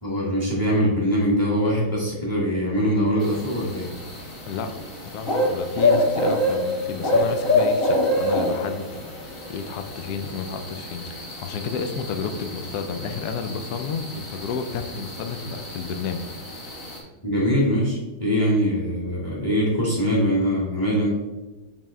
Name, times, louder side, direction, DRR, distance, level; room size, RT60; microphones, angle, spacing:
voice 1, 0.0-3.9 17.2-21.2, equal, 15° left, -4 dB, 1.0 m, -22 dB
sound 1, 3.2-17.0, left 1 dB, 35° left, 1.2 m, -27 dB
voice 2, 5.0-16.2, left 5 dB, 75° left, 7 dB, 0.9 m, -31 dB
7.6 x 3.5 x 3.6 m, 1.1 s
omnidirectional pair, 2.3 m